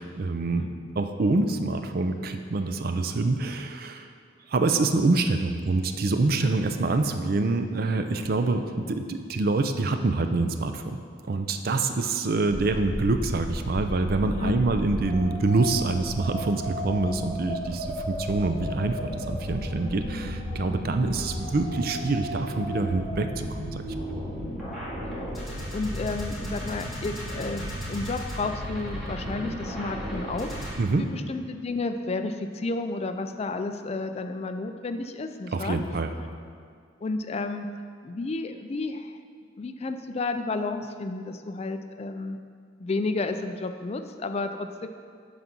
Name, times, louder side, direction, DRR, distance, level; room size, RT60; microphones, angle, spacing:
voice 1, 0.0-0.7 1.0-4.1 4.5-11.0 11.3-23.8 30.8-31.1 35.5-36.1, right 3 dB, 50° right, 7 dB, 0.5 m, -26 dB
sound 1, 12.5-30.7, equal, ahead, 1.9 m, -34 dB
voice 2, 14.4-14.7 25.0-30.6 31.0-35.8 37.0-37.7 38.0-39.2 39.6-42.4 42.8-44.9, left 3 dB, 35° left, 7 dB, 0.4 m, -32 dB
9.4 x 4.0 x 6.0 m, 2.1 s
head